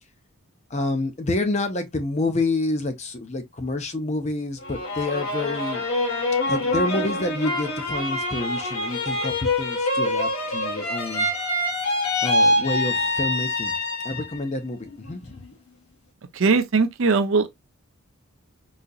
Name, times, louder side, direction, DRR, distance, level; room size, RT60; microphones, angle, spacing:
voice 1, 0.7-5.9 6.5-11.3 12.2-13.7 14.0-15.4, left 2 dB, 30° left, 0.6 m, -28 dB
sound 1, 4.6-14.4 14.8-15.5, left 1 dB, 75° left, 1.5 m, -25 dB
voice 2, 16.3-17.5, right 4 dB, 60° right, 0.5 m, -20 dB
3.9 x 2.8 x 2.3 m
head